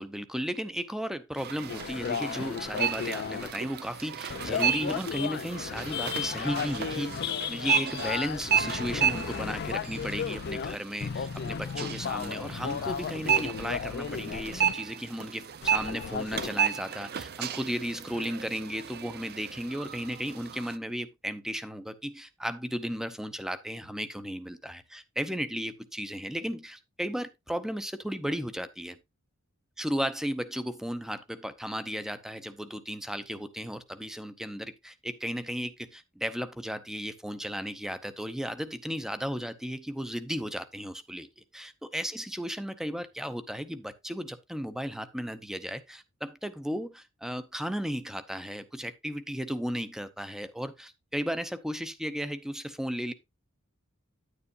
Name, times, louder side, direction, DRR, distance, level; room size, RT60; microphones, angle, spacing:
voice 1, 0.0-29.0 29.8-53.1, equal, ahead, 0.7 m, -35 dB
sound 1, 1.3-20.8, right 8 dB, 50° right, 0.5 m, -33 dB
sound 2, 1.7-3.5 4.3-10.8 11.0-14.7 15.6-16.5, left 7 dB, 50° left, 0.4 m, -34 dB
9.8 x 9.7 x 2.5 m
head